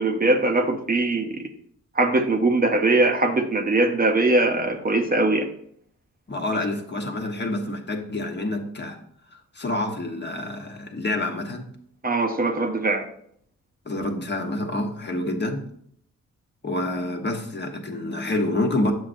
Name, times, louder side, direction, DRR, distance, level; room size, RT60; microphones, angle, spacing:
voice 1, 0.0-1.4 1.9-5.5 12.0-13.0, right 2 dB, 30° right, 5 dB, 0.7 m, -21 dB
voice 2, 6.3-9.0 9.3-11.7 13.8-15.6 16.6-18.9, left 1 dB, 35° left, 3 dB, 1.1 m, -27 dB
7.4 x 6.1 x 2.6 m, 0.66 s
cardioid pair, 80°, 31 cm